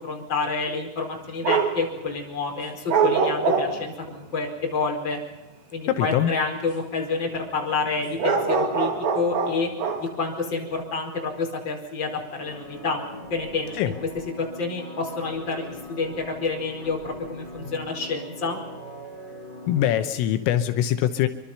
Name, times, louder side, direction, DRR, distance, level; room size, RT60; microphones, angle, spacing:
voice 1, 0.0-5.2 5.7-9.7 10.0-13.0 13.3-13.9 14.4-18.6, left 4 dB, 25° left, 1 dB, 5.0 m, -28 dB
sound 1, 1.4-1.8 2.9-4.1 8.2-10.1, right 5 dB, 55° right, 3.5 m, -23 dB
voice 2, 5.9-6.3 13.8-13.9 19.7-21.3, left 11 dB, 80° left, 8 dB, 3.5 m, -22 dB
sound 2, 12.4-20.1, equal, 20° right, 8.2 m, -41 dB
27.0 x 24.0 x 5.7 m, 0.97 s
omnidirectional pair, 5.9 m